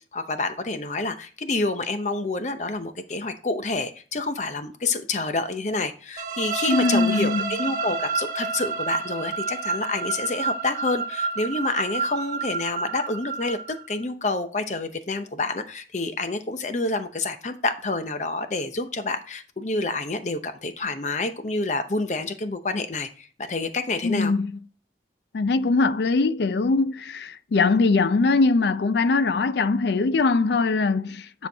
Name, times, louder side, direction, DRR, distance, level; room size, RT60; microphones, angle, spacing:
voice 1, 0.1-13.6 13.9-24.3, left 3 dB, 40° left, 0.7 m, -28 dB
sound 1, 6.2-14.0, right 4 dB, 50° right, 1.0 m, -29 dB
voice 2, 6.7-7.5 24.0-24.5 25.3-31.5, left 3 dB, 70° left, 0.4 m, -22 dB
9.7 x 4.5 x 3.5 m
head